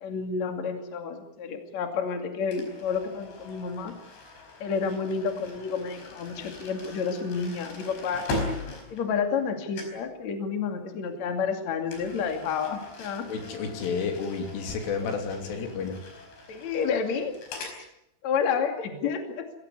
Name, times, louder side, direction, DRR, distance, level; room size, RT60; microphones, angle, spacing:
voice 1, 0.0-3.9 4.6-8.2 8.9-13.2 15.0-15.1 15.5-15.7 16.5-17.7 18.2-19.4, left 6 dB, 45° left, 5 dB, 3.2 m, -30 dB
sound 1, 2.5-9.5 9.7-10.1 11.9-17.8, left 2 dB, 60° left, 6.8 m, -40 dB
voice 2, 13.3-16.0, left 5 dB, 85° left, 4 dB, 5.6 m, -31 dB
24.5 x 17.0 x 9.8 m, 0.83 s
omnidirectional pair, 5.5 m